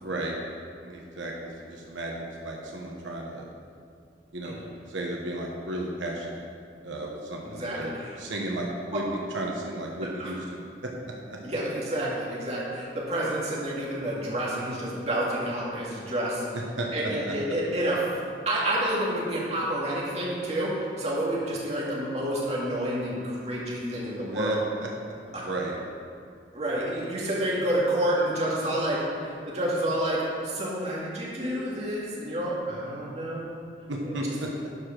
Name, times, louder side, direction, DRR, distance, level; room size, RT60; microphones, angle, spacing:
voice 1, 0.0-0.4 0.8-3.5 4.3-4.6 4.9-6.4 6.8-10.9 11.3-11.4 16.5-17.3 24.3-24.9 25.3-25.7 33.9-34.7, right 1 dB, 90° right, -1 dB, 1.2 m, -33 dB
voice 2, 7.5-8.2 8.9-9.0 10.2-10.3 11.4-16.5 16.9-18.1 18.5-24.6 25.3-25.5 26.5-33.7, right 1 dB, 35° right, -5 dB, 2.0 m, -29 dB
11.5 x 5.0 x 6.0 m, 2.3 s
head